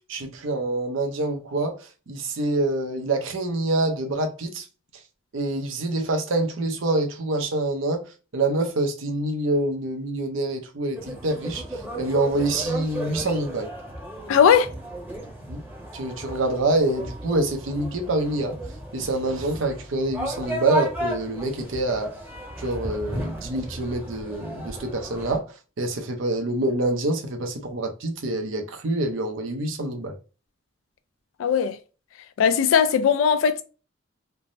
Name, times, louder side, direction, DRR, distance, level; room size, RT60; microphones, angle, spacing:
voice 1, 0.1-1.8 2.1-4.6 5.3-8.0 8.3-11.6 12.0-13.7 15.5-15.6 15.9-18.5 18.9-22.1 22.6-25.4 25.8-30.2, right 2 dB, 85° right, 0.7 m, -26 dB
sound 1, 10.9-25.4, right 1 dB, 10° right, 0.8 m, -35 dB
voice 2, 14.3-14.7 31.4-31.8 32.4-33.6, left 7 dB, 85° left, 0.3 m, -18 dB
3.3 x 2.0 x 2.6 m
head